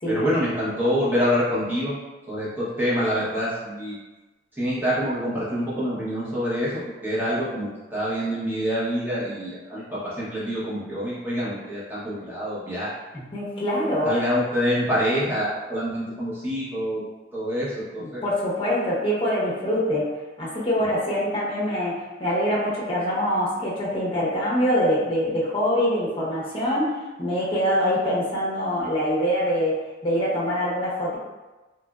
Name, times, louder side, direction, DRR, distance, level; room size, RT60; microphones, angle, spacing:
voice 1, 0.1-1.9 2.3-4.0 4.5-12.9 14.0-17.0 17.3-18.2, equal, 10° right, -9 dB, 0.8 m, -26 dB
voice 2, 13.1-14.1 18.0-20.1 20.4-26.9 27.2-31.2, equal, 30° left, -6 dB, 0.7 m, -24 dB
2.9 x 2.4 x 2.3 m, 1.2 s
head